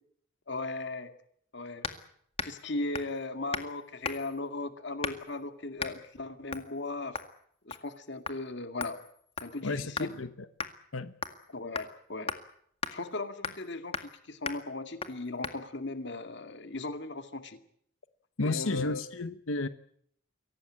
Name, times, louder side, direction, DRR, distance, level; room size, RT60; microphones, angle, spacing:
voice 1, 0.5-1.1 1.5-1.9 2.4-7.2 7.7-9.0 9.4-10.1 11.5-12.3 12.9-17.6 18.4-19.0, left 2 dB, 60° left, 8 dB, 2.2 m, -37 dB
sound 1, 1.8-2.0 2.4-2.6 2.9-3.2 3.5-3.7 4.0-4.4 5.0-5.3 5.8-6.0 6.5-6.7 7.1-7.3 7.7-8.0 8.3-8.4 8.8-10.1 10.6-10.7 11.2-11.4 11.8-11.9 12.3-12.4 12.8-12.9 13.4-13.7 13.9-14.1 14.5-14.6 15.0-15.1 15.4-15.6, left 5 dB, 30° left, 1.9 m, -37 dB
voice 2, 9.6-10.3 10.9-11.1 18.4-19.7, left 3 dB, 85° left, 12 dB, 1.1 m, -32 dB
23.5 x 18.0 x 8.7 m, 0.67 s
head